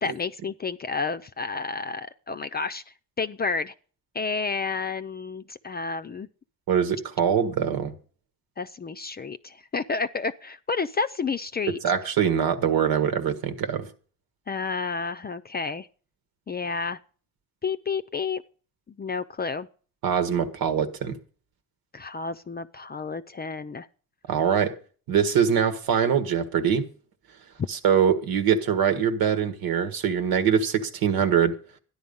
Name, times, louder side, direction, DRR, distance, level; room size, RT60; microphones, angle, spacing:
voice 1, 0.0-3.7 4.1-6.3 8.6-11.8 14.5-15.9 16.5-17.0 17.6-18.4 18.9-19.7 21.9-23.9, left 4 dB, 25° left, 0.5 m, -30 dB
voice 2, 6.7-7.9 11.8-13.9 20.0-21.2 24.3-24.7 25.1-26.9 27.7-31.5, right 8 dB, 90° right, 1.6 m, -23 dB
13.0 x 10.5 x 5.3 m
cardioid pair, 115°, 35 cm